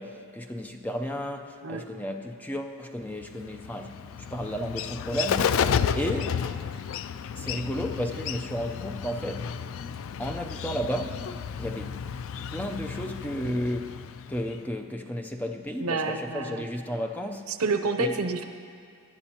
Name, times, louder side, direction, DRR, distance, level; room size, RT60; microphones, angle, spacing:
voice 1, 0.0-4.0 4.3-6.4 7.3-9.6 10.2-11.3 11.6-12.0 12.5-14.0 14.3-17.6 18.0-18.1, equal, 5° left, 4 dB, 0.5 m, -33 dB
Bird, 3.2-14.7, left 7 dB, 65° left, 0.3 m, -32 dB
voice 2, 15.8-16.7 17.5-18.5, right 3 dB, 85° right, 7 dB, 0.7 m, -28 dB
21.5 x 11.0 x 2.9 m, 2.2 s
head